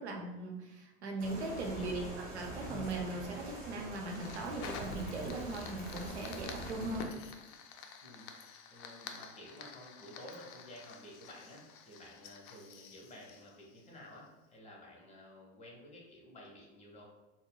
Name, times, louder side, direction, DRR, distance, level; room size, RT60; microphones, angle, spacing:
voice 1, 0.0-7.1, right 2 dB, 90° right, 1 dB, 0.6 m, -39 dB
sound 1, 1.2-7.0, right 1 dB, 25° right, 1.3 m, -44 dB
voice 2, 1.7-2.3 8.0-8.3 8.7-17.0, left 1 dB, 20° left, -2 dB, 1.0 m, -53 dB
Fire, 2.9-14.3, left 6 dB, 45° left, 0.4 m, -50 dB
3.9 x 2.1 x 2.2 m, 1.0 s
hypercardioid pair, 95°, 32 cm